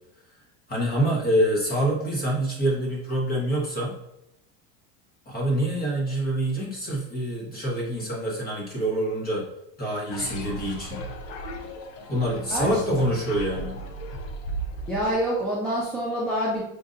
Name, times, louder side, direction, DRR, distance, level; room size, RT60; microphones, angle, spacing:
voice 1, 0.7-3.9 5.3-9.4 9.8-11.0 12.1-13.8, right 1 dB, 25° left, -2 dB, 1.2 m, -26 dB
sound 1, 10.1-15.2, right 1 dB, 80° left, 0.8 m, -36 dB
voice 2, 12.5-12.8 14.9-16.6, equal, ahead, -7 dB, 0.7 m, -26 dB
5.4 x 2.5 x 2.5 m, 0.83 s
cardioid pair, 140°, 37 cm